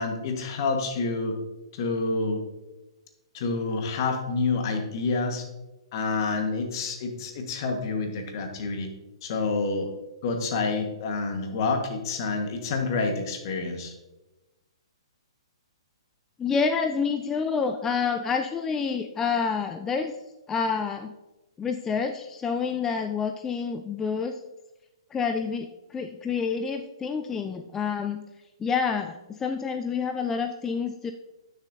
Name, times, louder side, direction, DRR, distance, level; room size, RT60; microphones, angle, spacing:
voice 1, 0.0-1.4 1.7-2.4 3.3-5.4 5.9-8.9 9.2-9.9 10.2-13.9, left 3 dB, 45° left, 5 dB, 1.4 m, -28 dB
voice 2, 16.4-20.1 20.5-21.1 21.6-24.4 25.1-28.2 28.6-31.1, left 5 dB, 15° left, 6 dB, 0.4 m, -28 dB
9.7 x 6.5 x 2.7 m, 1.1 s
hypercardioid pair, 130°, 3 cm